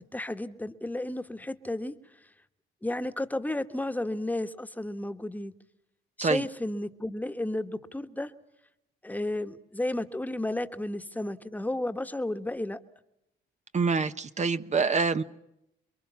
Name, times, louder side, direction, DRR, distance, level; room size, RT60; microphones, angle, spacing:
voice 1, 0.0-1.9 2.8-5.5 6.2-8.3 9.0-12.8, left 1 dB, 10° left, 1.5 m, -32 dB
voice 2, 13.7-15.2, right 4 dB, 35° right, 1.0 m, -26 dB
28.0 x 22.5 x 7.1 m
cardioid pair, 90°, 20 cm